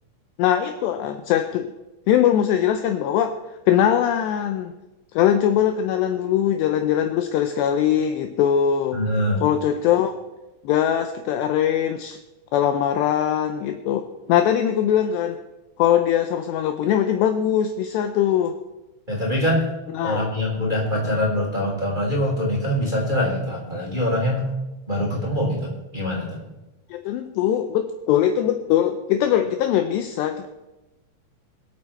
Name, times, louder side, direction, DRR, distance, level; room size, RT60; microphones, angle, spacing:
voice 1, 0.4-1.7 2.1-3.4 3.7-4.7 5.1-9.0 9.4-10.1 10.6-12.2 12.5-15.4 15.8-18.6 19.9-20.2 26.9-30.5, left 10 dB, 80° left, 7 dB, 2.6 m, -21 dB
voice 2, 8.9-9.4 19.1-19.7 20.0-24.5 24.9-26.4, left 1 dB, 10° right, -4 dB, 3.6 m, -24 dB
25.5 x 8.4 x 4.5 m, 1.0 s
omnidirectional pair, 5.6 m